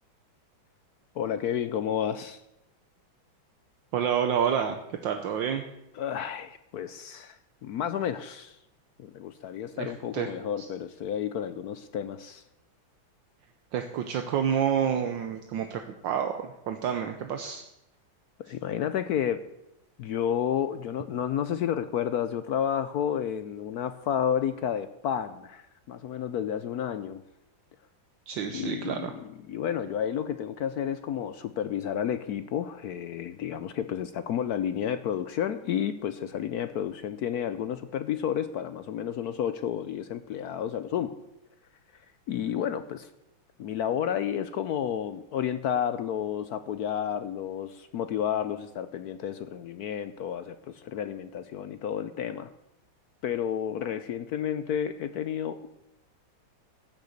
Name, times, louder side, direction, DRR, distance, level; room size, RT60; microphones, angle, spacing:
voice 1, 1.1-2.4 6.0-8.6 9.0-12.4 18.4-19.4 20.0-27.2 28.5-41.1 42.3-43.1 43.6-52.5 53.2-55.7, left 9 dB, 75° left, 11 dB, 0.9 m, -31 dB
voice 2, 3.9-5.6 9.8-10.3 10.6-10.7 13.7-17.6 28.3-29.1, right 8 dB, 70° right, 6 dB, 1.5 m, -29 dB
14.5 x 6.7 x 8.0 m, 0.87 s
omnidirectional pair, 2.2 m